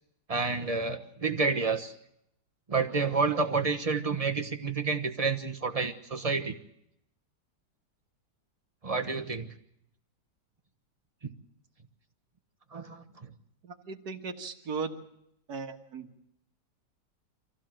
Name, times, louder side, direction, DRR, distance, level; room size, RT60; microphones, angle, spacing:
voice 1, 0.3-1.9 2.7-6.5 8.8-9.5 12.7-13.3, right 4 dB, 25° right, 4 dB, 1.1 m, -29 dB
voice 2, 13.6-15.0 15.5-16.1, right 5 dB, 65° right, 5 dB, 2.0 m, -37 dB
24.5 x 16.0 x 7.6 m, 0.78 s
omnidirectional pair, 1.9 m